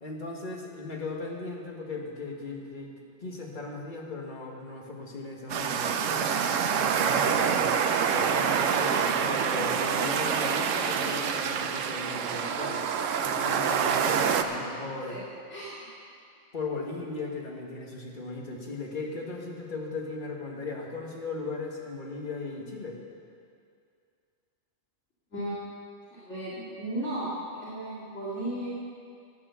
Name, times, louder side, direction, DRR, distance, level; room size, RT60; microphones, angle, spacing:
voice 1, 0.0-2.9 3.2-15.1 16.5-23.0, left 3 dB, 40° left, -1 dB, 1.8 m, -37 dB
sound 1, 5.5-14.4, right 7 dB, 85° right, 1.1 m, -26 dB
voice 2, 13.8-14.7 15.1-15.2 15.5-15.9 25.3-25.6 26.1-28.7, right 1 dB, 70° left, -9 dB, 2.7 m, -36 dB
13.5 x 8.9 x 7.0 m, 2.4 s
omnidirectional pair, 1.3 m